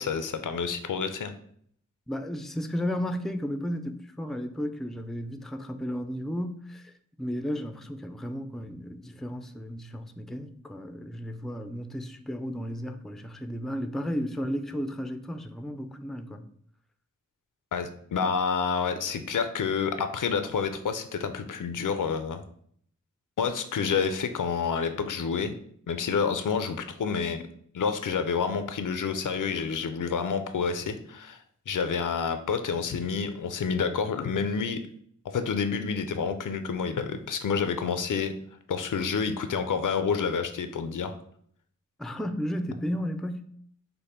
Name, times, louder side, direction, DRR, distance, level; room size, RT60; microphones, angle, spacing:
voice 1, 0.0-1.3 17.7-22.4 23.4-25.6 25.9-27.4 27.7-31.4 31.7-34.8 35.3-38.3 38.7-41.1, left 6 dB, 85° left, 0.5 m, -29 dB
voice 2, 2.1-6.9 7.2-16.5 42.0-43.5, equal, ahead, 0.3 m, -33 dB
5.2 x 2.1 x 4.3 m
wide cardioid pair, 65°, 30 cm